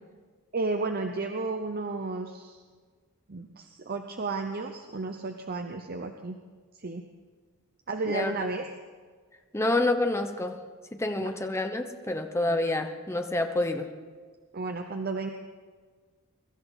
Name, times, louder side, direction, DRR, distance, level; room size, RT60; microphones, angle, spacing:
voice 1, 0.5-2.6 3.3-6.4 6.8-7.0 7.9-8.6 11.2-11.3 14.5-15.3, right 3 dB, 45° right, 5 dB, 0.7 m, -32 dB
voice 2, 9.5-10.6 10.9-13.9, left 2 dB, 10° left, 5 dB, 0.9 m, -28 dB
23.5 x 13.0 x 4.1 m, 1.6 s
head